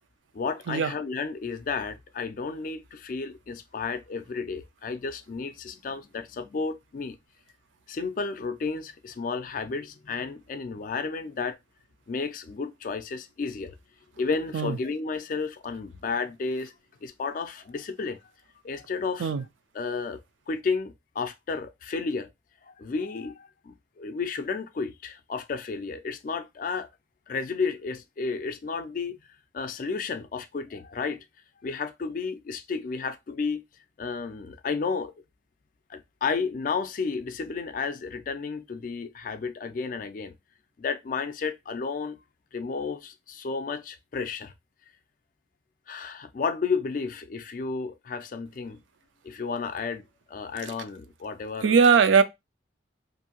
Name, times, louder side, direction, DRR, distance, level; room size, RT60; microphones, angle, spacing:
voice 1, 0.3-7.2 7.9-11.6 12.1-13.8 14.2-16.7 17.0-18.2 18.6-19.3 19.7-20.2 20.5-22.3 22.7-26.9 27.3-29.2 29.5-31.3 31.6-33.6 34.0-35.1 35.9-40.3 40.8-42.2 42.5-44.5 45.9-48.8 49.2-51.8, left 4 dB, 45° left, 0.3 m, -32 dB
voice 2, 51.6-52.2, right 6 dB, 80° right, 0.4 m, -19 dB
2.7 x 2.6 x 2.8 m
head